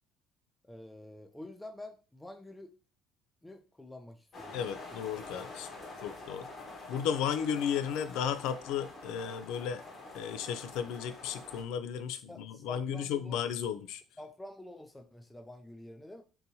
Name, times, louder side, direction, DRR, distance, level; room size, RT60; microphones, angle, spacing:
voice 1, 0.6-2.7 3.4-4.6 5.3-5.6 5.9-6.0 12.1-13.4 14.2-16.2, left 1 dB, 10° left, 6 dB, 0.4 m, -48 dB
sound 1, 4.3-11.6, left 2 dB, 35° left, 1.1 m, -47 dB
voice 2, 4.5-5.7 6.0-6.5 6.9-9.8 10.1-14.0, left 8 dB, 80° left, 11 dB, 0.4 m, -34 dB
3.8 x 2.7 x 2.8 m, 0.35 s
cardioid pair, 120°, 0 cm